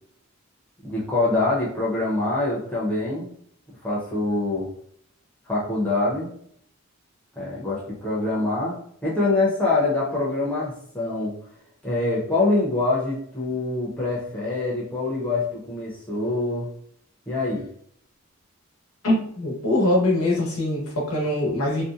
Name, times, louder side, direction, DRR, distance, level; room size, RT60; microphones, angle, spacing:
voice 1, 0.8-3.3 3.8-4.7 5.5-6.3 7.4-8.7 9.0-11.3 11.8-16.7 17.3-17.6, left 2 dB, 5° left, -7 dB, 0.6 m, -24 dB
voice 2, 19.0-21.8, left 1 dB, 85° left, -3 dB, 0.9 m, -23 dB
2.7 x 2.1 x 2.4 m, 0.65 s
head